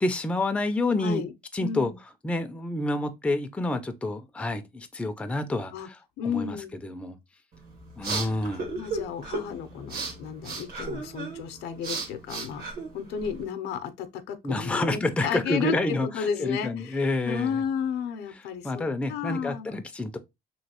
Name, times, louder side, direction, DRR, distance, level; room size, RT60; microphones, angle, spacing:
voice 1, 0.0-1.2 1.5-1.9 2.2-6.0 6.2-6.6 6.8-7.2 8.0-8.7 14.4-17.6 18.6-20.2, left 2 dB, 5° left, 0.4 m, -28 dB
voice 2, 1.0-1.3 1.6-2.0 5.7-5.9 6.2-6.7 8.7-17.0 17.3-19.8, left 7 dB, 80° left, 0.6 m, -33 dB
sound 1, 7.5-13.4, right 3 dB, 65° right, 1.2 m, -35 dB
3.0 x 3.0 x 2.8 m
cardioid pair, 110°, 17 cm